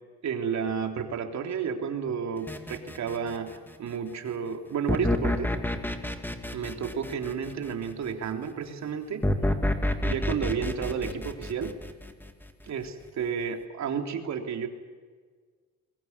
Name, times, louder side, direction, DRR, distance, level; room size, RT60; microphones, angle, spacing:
voice 1, 0.2-5.5 6.5-9.2 10.0-11.7 12.7-14.7, right 6 dB, 70° right, 4 dB, 3.5 m, -31 dB
sound 1, 2.5-3.7 4.9-7.9 9.2-12.4, left 1 dB, 5° left, 2.3 m, -29 dB
23.5 x 21.0 x 9.7 m, 1.5 s
cardioid pair, 90°, 29 cm